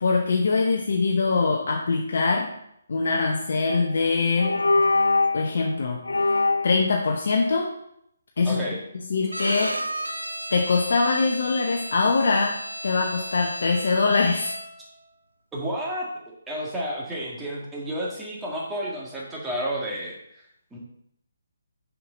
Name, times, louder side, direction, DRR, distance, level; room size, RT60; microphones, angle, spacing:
voice 1, 0.0-2.5 2.9-4.6 5.3-6.0 6.6-7.7 8.4-8.6 9.1-9.7 10.5-12.6 12.8-14.5, left 4 dB, 55° left, 1 dB, 0.9 m, -23 dB
sound 1, 3.7-4.0 4.4-5.5 6.0-6.8, left 3 dB, 75° left, 0.4 m, -22 dB
voice 2, 8.5-8.8 15.5-16.1 16.5-20.2 20.7-20.8, equal, 10° right, -5 dB, 1.8 m, -31 dB
Bowed string instrument, 9.3-14.9, right 1 dB, 85° right, 0.9 m, -34 dB
6.7 x 6.0 x 3.9 m, 0.75 s
figure-of-eight pair, 145°, 0 cm